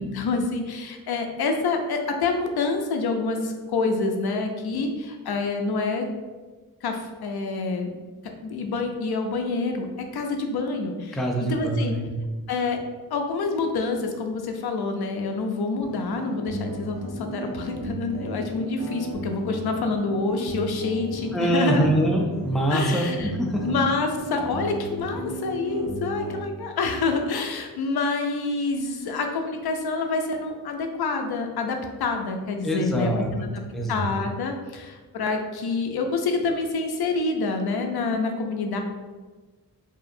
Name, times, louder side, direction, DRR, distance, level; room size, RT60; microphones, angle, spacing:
voice 1, 0.0-6.1 6.8-7.9 8.4-11.2 11.5-11.9 12.5-12.8 13.1-21.9 22.7-23.3 23.6-33.6 33.9-38.8, left 3 dB, 85° left, 4 dB, 0.6 m, -27 dB
voice 2, 11.1-12.1 21.3-23.7 32.6-33.5 33.7-34.0, right 1 dB, ahead, 0 dB, 0.4 m, -24 dB
sound 1, 15.8-26.4, right 1 dB, 60° right, 1.3 m, -34 dB
4.7 x 2.8 x 2.5 m, 1.3 s
wide cardioid pair, 125°, 37 cm